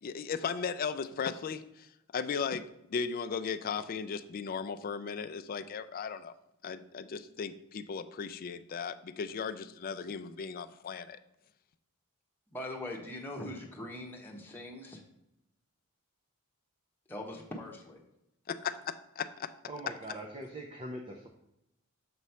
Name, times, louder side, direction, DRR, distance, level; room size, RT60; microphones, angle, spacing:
voice 1, 0.0-1.9 2.1-2.6 2.9-6.3 6.6-11.2 18.5-18.7 19.2-19.5, left 6 dB, 40° left, 12 dB, 0.3 m, -36 dB
voice 2, 12.5-15.0 17.1-18.0, left 1 dB, 10° left, -1 dB, 1.0 m, -41 dB
voice 3, 19.7-21.3, right 1 dB, 25° right, 1 dB, 0.6 m, -42 dB
6.8 x 3.1 x 5.5 m, 0.85 s
head